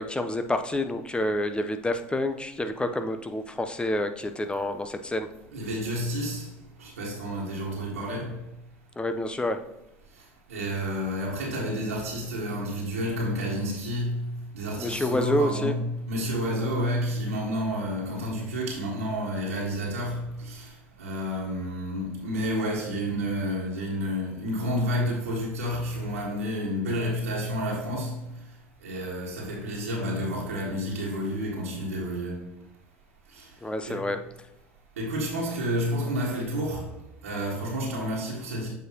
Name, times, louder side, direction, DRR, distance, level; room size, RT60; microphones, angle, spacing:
voice 1, 0.0-5.3 9.0-9.6 14.8-15.7 33.6-34.2, left 1 dB, 15° left, 0.8 m, -28 dB
voice 2, 5.5-6.5 6.8-8.4 10.5-28.3 28.8-32.5 33.3-33.5 33.9-34.1 35.0-36.9 37.2-38.7, equal, 85° right, 1.7 m, -30 dB
7.8 x 4.9 x 2.9 m
hypercardioid pair, 75°, 7 cm